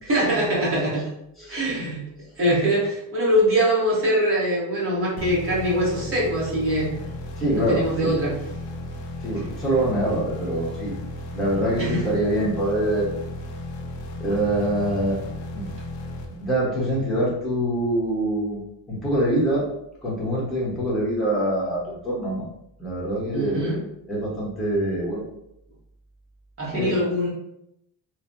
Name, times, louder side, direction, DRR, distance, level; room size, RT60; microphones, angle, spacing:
voice 1, 0.1-1.0 1.5-2.0 2.4-6.9 7.6-8.3 11.8-12.2 23.3-23.8 26.6-27.3, equal, 30° right, -7 dB, 1.2 m, -23 dB
voice 2, 1.4-1.7 3.3-3.4 7.4-8.1 9.2-11.0 11.3-13.2 14.2-15.2 15.5-15.7 16.3-18.6 18.9-19.7 20.0-22.5 22.8-23.8 24.1-25.3 26.7-26.9, right 1 dB, ahead, -8 dB, 1.0 m, -25 dB
sound 1, 5.2-16.9, left 2 dB, 70° left, 0.5 m, -34 dB
3.2 x 2.1 x 2.6 m, 0.79 s
cardioid pair, 145°, 46 cm